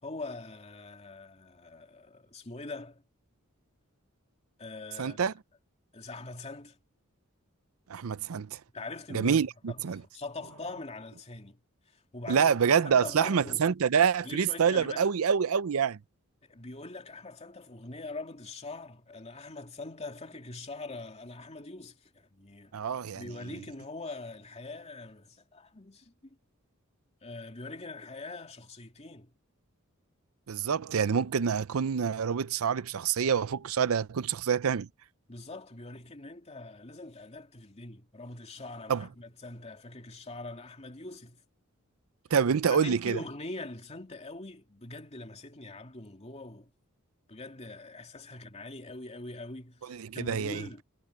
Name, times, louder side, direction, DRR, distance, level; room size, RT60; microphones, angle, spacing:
voice 1, 0.0-3.0 4.6-5.2 5.9-6.8 8.7-11.6 11.9-13.7 14.2-15.1 16.5-22.7 23.1-26.4 27.2-29.3 35.3-41.4 42.7-46.7 47.3-50.8, left 2 dB, 30° left, 2.7 m, -43 dB
voice 2, 5.0-5.3 7.9-8.6 9.1-10.0 12.3-16.0 22.7-23.3 30.5-34.9 38.9-39.1 42.3-43.2 49.9-50.6, right 7 dB, 80° right, 0.5 m, -27 dB
head